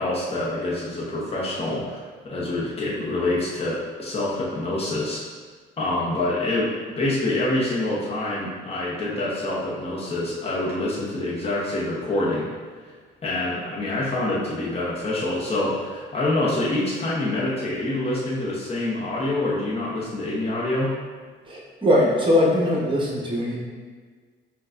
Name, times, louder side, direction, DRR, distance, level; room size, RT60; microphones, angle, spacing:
voice 1, 0.0-2.0 2.2-5.2 5.8-12.5 13.2-21.0, left 2 dB, 30° left, -6 dB, 0.9 m, -26 dB
voice 2, 21.5-23.6, left 1 dB, 25° right, -3 dB, 1.0 m, -21 dB
5.3 x 2.3 x 2.5 m, 1.5 s
cardioid pair, 90°, 20 cm